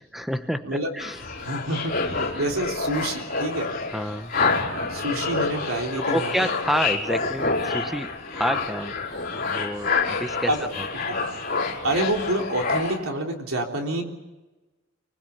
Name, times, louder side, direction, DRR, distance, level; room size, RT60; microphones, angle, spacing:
voice 1, 0.0-1.2 2.4-2.5 3.9-4.4 6.0-9.0 9.5-10.5, equal, ahead, 8 dB, 0.8 m, -29 dB
sound 1, 1.0-13.0, left 4 dB, 40° left, 4.3 m, -28 dB
voice 2, 1.3-1.9 2.4-3.7 4.9-6.5 10.5-10.7 11.8-14.0, right 1 dB, 80° right, 2 dB, 3.6 m, -27 dB
24.5 x 19.5 x 8.8 m, 1.1 s
head